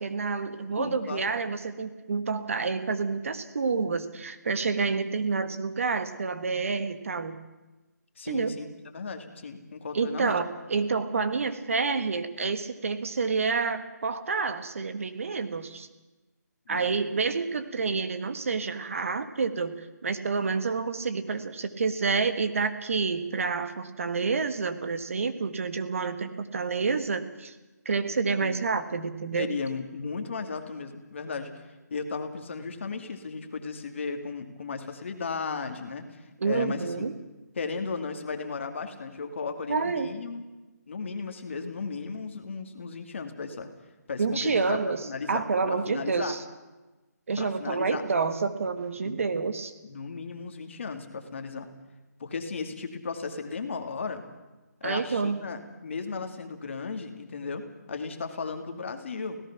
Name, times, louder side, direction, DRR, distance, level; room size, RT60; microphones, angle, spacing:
voice 1, 0.0-7.4 8.3-8.5 9.9-15.9 16.7-27.5 27.8-29.5 36.4-37.1 39.7-40.1 44.2-45.0 45.3-46.4 47.3-49.7 54.8-55.4, right 4 dB, 50° right, 10 dB, 1.6 m, -28 dB
voice 2, 0.7-1.3 8.2-10.4 16.7-16.9 28.3-28.5 29.4-31.5 31.9-37.1 37.6-40.4 40.9-43.7 44.1-46.3 47.4-48.0 49.0-49.2 49.8-51.7 52.2-54.2 54.8-59.4, left 4 dB, 45° left, 6 dB, 2.3 m, -35 dB
25.0 x 17.5 x 5.9 m, 1.1 s
hypercardioid pair, 170°, 9 cm